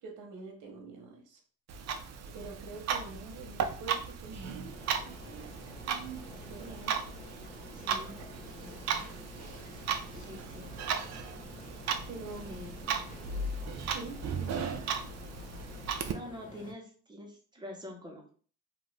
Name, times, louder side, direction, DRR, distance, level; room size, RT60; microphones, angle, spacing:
voice 1, 0.0-1.4 2.3-4.7 6.5-7.0 12.1-12.6 13.8-14.7, right 4 dB, 85° right, 3 dB, 0.9 m, -45 dB
Clock, 1.7-16.1, right 6 dB, 60° right, 0.5 m, -36 dB
sound 1, 4.6-16.7, left 2 dB, 25° left, 0.7 m, -49 dB
voice 2, 7.7-8.1 10.1-10.7 12.4-12.8 16.1-18.3, left 1 dB, 15° right, 1 dB, 1.0 m, -45 dB
2.6 x 2.5 x 3.2 m, 0.42 s
cardioid pair, 90°, 30 cm